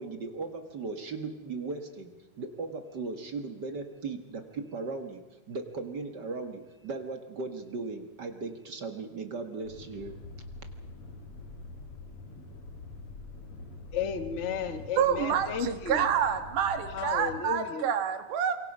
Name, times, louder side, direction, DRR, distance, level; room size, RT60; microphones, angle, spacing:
voice 1, 0.0-2.1 2.4-10.2, right 3 dB, 40° right, 6 dB, 1.8 m, -37 dB
sound 1, 9.6-17.4, left 2 dB, 50° left, 3.0 m, -45 dB
voice 2, 13.9-16.1 16.9-17.9, left 7 dB, 75° left, 9 dB, 0.6 m, -33 dB
voice 3, 15.0-18.5, right 8 dB, 80° right, 8 dB, 3.1 m, -28 dB
27.0 x 23.5 x 5.5 m, 1.1 s
omnidirectional pair, 3.6 m